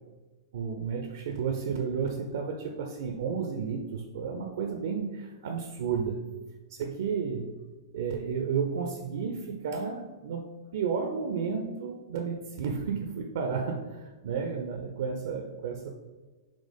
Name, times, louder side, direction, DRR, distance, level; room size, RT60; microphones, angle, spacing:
voice 1, 0.5-6.2 6.7-7.5 7.9-10.4 10.7-15.9, right 6 dB, 55° right, 3 dB, 0.4 m, -32 dB
4.2 x 2.9 x 3.3 m, 1.3 s
figure-of-eight pair, 105°, 2 cm